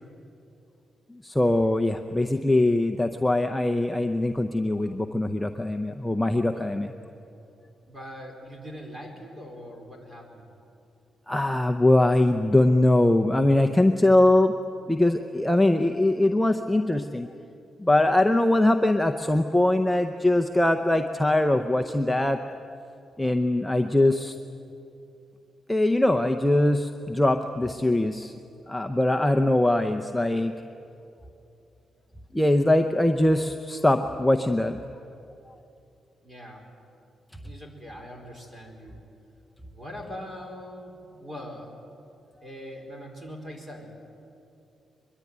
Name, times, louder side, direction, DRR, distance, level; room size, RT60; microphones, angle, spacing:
voice 1, 1.2-6.9 11.3-14.5 14.9-17.3 17.8-22.4 23.2-24.3 25.7-28.3 28.7-30.5 32.3-34.8, left 1 dB, 5° left, 5 dB, 0.7 m, -22 dB
voice 2, 7.9-10.5 36.2-36.6 37.4-39.0 39.7-41.7 42.4-43.9, equal, 20° right, 2 dB, 4.5 m, -41 dB
23.0 x 22.5 x 9.5 m, 2.7 s
wide cardioid pair, 160°, 0 cm